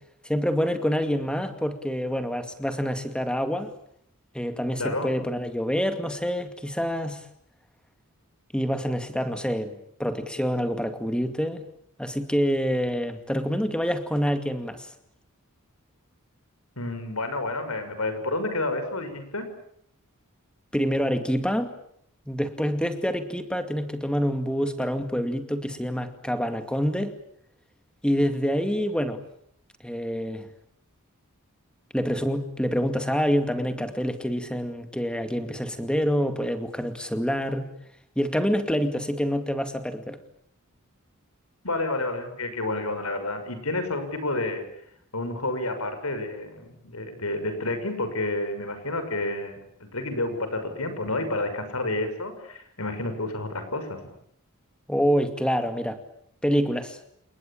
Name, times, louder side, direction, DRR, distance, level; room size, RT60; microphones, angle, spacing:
voice 1, 0.2-3.7 4.3-7.2 8.5-11.6 12.0-14.9 20.7-21.7 22.3-27.2 28.0-29.2 29.8-30.5 31.9-37.7 38.2-40.2 54.9-56.0 56.4-57.0, equal, 5° left, 8 dB, 2.3 m, -26 dB
voice 2, 4.8-5.1 16.8-19.5 41.6-44.6 45.1-54.0, left 2 dB, 80° left, 9 dB, 6.4 m, -30 dB
30.0 x 19.5 x 8.7 m, 0.71 s
head